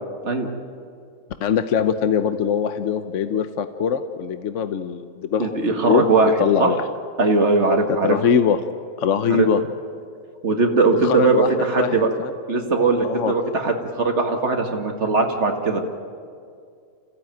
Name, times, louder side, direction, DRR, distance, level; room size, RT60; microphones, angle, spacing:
voice 1, 1.4-6.1 6.4-6.8 8.0-8.6 9.0-9.6 11.0-11.5 11.8-12.3 13.0-13.3, left 7 dB, 55° left, 9 dB, 1.0 m, -22 dB
voice 2, 5.4-6.3 6.6-6.7 7.2-8.2 9.3-9.5 10.4-12.1 12.5-15.8, right 3 dB, 45° right, 3 dB, 2.2 m, -20 dB
27.0 x 15.5 x 9.2 m, 2.3 s
omnidirectional pair, 1.8 m